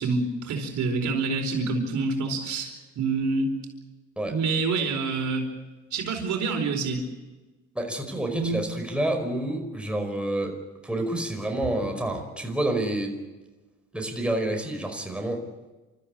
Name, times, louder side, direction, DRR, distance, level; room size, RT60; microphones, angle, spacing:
voice 1, 0.0-3.5 4.3-5.5 5.9-7.0 8.3-8.6, right 4 dB, 70° right, 4 dB, 4.5 m, -27 dB
voice 2, 7.8-10.5 10.8-13.1 13.9-15.4, right 1 dB, 5° right, 3 dB, 5.2 m, -28 dB
29.0 x 14.0 x 8.7 m, 1.2 s
cardioid pair, 90°, 30 cm